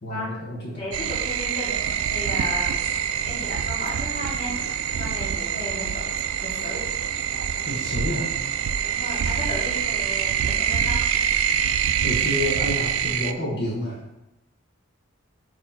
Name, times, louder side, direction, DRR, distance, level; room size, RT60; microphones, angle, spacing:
voice 1, 0.0-0.7 7.6-8.3 12.0-14.0, left 1 dB, 55° left, -3 dB, 1.2 m, -29 dB
voice 2, 0.8-1.8 2.1-2.8 3.2-4.5 5.0-6.0 6.4-6.8 8.8-11.0, left 1 dB, 30° left, -8 dB, 2.3 m, -34 dB
sound 1, 0.9-13.3, right 8 dB, 90° right, 0.3 m, -25 dB
4.9 x 4.4 x 4.3 m, 0.93 s
head